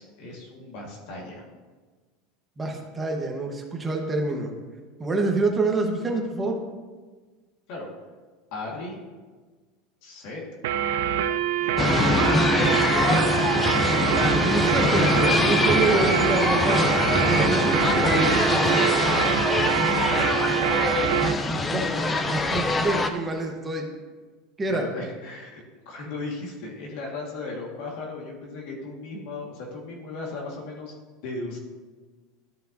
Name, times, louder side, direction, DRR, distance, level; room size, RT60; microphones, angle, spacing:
voice 1, 0.0-1.4 7.7-7.9 8.5-9.0 10.0-10.4 11.5-12.2 12.9-13.2 24.7-30.9 31.2-31.6, left 3 dB, 60° left, -1 dB, 1.5 m, -36 dB
voice 2, 2.6-4.5 5.0-6.6 14.3-18.8 21.7-23.8 24.6-24.9, right 3 dB, 15° right, 2 dB, 1.0 m, -27 dB
sound 1, 10.6-21.4, right 10 dB, 85° right, 0.4 m, -25 dB
sound 2, 11.8-23.1, left 3 dB, 15° left, 0.4 m, -23 dB
12.5 x 5.4 x 2.6 m, 1.4 s
supercardioid pair, 160°, 0 cm